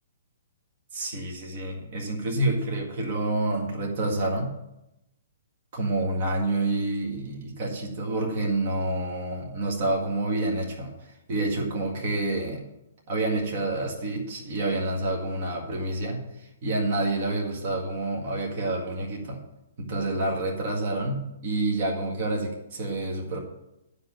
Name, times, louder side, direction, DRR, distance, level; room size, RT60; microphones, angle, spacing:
voice 1, 0.9-4.5 5.7-12.6 13.1-19.4 19.8-23.4, right 2 dB, 40° right, 0 dB, 1.8 m, -28 dB
11.0 x 5.2 x 7.4 m, 0.90 s
hypercardioid pair, 160°, 0 cm